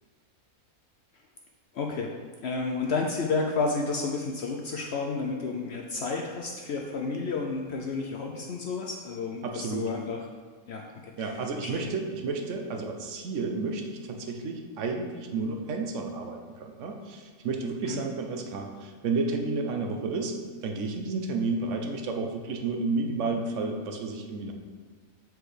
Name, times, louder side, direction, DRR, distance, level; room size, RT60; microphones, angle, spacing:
voice 1, 1.7-2.1 2.4-10.2 10.7-11.9 17.8-18.0, left 4 dB, 65° left, 1 dB, 0.7 m, -31 dB
voice 2, 9.4-9.9 11.2-20.3 20.6-24.5, right 3 dB, 65° right, 3 dB, 0.9 m, -31 dB
7.8 x 4.6 x 3.2 m, 1.5 s
omnidirectional pair, 1.5 m